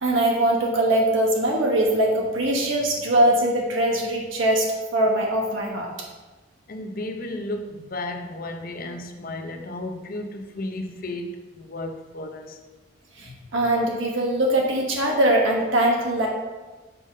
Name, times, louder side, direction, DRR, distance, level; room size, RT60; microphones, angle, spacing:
voice 1, 0.0-4.7 4.9-5.9 13.2-16.3, right 1 dB, 75° right, 1.1 m, -22 dB
voice 2, 6.7-12.6 13.2-13.5, left 1 dB, 45° left, 0.6 m, -34 dB
6.9 x 5.2 x 3.8 m
head